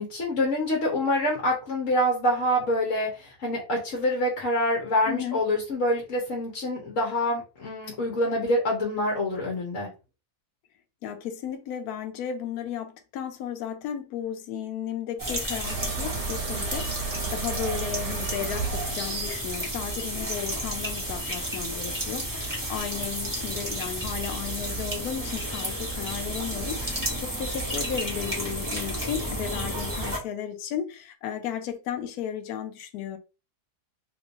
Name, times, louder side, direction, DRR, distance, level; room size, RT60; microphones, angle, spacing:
voice 1, 0.0-9.9, left 1 dB, 55° left, 1.2 m, -26 dB
voice 2, 5.1-5.4 11.0-33.2, left 9 dB, 70° left, 1.1 m, -34 dB
sound 1, 15.2-30.2, right 1 dB, 15° right, 0.8 m, -32 dB
sound 2, 15.6-20.6, right 5 dB, 85° right, 1.4 m, -35 dB
3.1 x 3.1 x 2.6 m
omnidirectional pair, 1.8 m